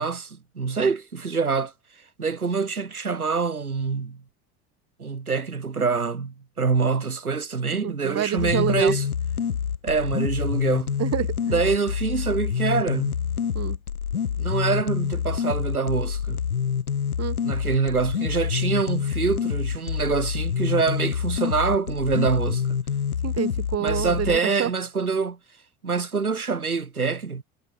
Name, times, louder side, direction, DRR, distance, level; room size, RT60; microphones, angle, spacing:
voice 1, 0.0-1.7 2.2-4.2 5.0-9.1 9.8-11.0 11.5-13.2 14.4-16.4 17.4-22.6 23.8-25.4 25.8-27.4, right 5 dB, 85° right, 2.1 m, -25 dB
voice 2, 7.8-8.9 11.0-11.6 13.5-13.8 17.2-17.4 23.2-24.7, right 10 dB, 35° right, 3.2 m, -28 dB
sound 1, 8.4-24.4, left 7 dB, 90° left, 0.8 m, -27 dB
figure-of-eight pair, 70°, 43 cm